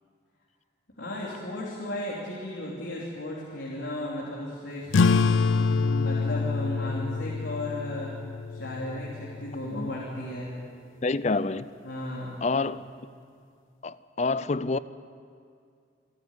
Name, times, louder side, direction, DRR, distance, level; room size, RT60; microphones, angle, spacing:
voice 1, 1.0-4.9 5.6-8.2 8.5-10.5 11.8-12.7, left 1 dB, 70° left, 3.1 m, -35 dB
sound 1, 4.9-10.0, left 4 dB, 90° left, 0.5 m, -26 dB
voice 2, 11.0-11.7 12.4-12.8 13.8-14.8, left 3 dB, 35° left, 0.4 m, -27 dB
28.0 x 9.6 x 9.7 m
head